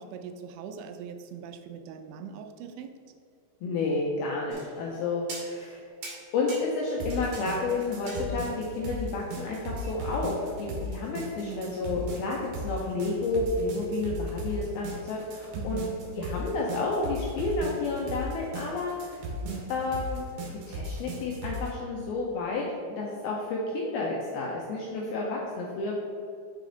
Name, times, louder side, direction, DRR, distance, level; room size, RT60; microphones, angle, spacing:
voice 1, 0.0-2.9 11.4-11.7 15.6-15.9 19.4-19.7, right 7 dB, 90° right, 7 dB, 2.9 m, -41 dB
voice 2, 3.6-5.9 6.3-15.9 16.2-19.1 19.7-20.2 20.5-26.0, left 3 dB, 80° left, -3 dB, 2.2 m, -31 dB
sound 1, 4.5-5.0 5.3-5.8 6.0-7.5 7.8-8.7 9.8-9.9, right 2 dB, 55° right, 2.8 m, -42 dB
sound 2, 7.0-21.7, equal, 70° right, 2.9 m, -36 dB
6.7 x 4.9 x 3.9 m, 2.4 s
omnidirectional pair, 5.2 m